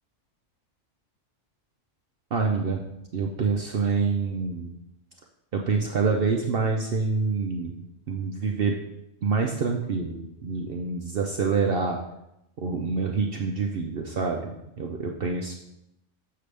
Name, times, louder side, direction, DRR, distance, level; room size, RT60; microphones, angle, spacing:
voice 1, 2.3-2.8 3.1-4.7 5.5-8.8 9.2-12.0 12.6-14.5 14.8-15.5, right 4 dB, 55° right, 2 dB, 0.7 m, -26 dB
6.7 x 6.6 x 3.3 m, 0.84 s
omnidirectional pair, 1.3 m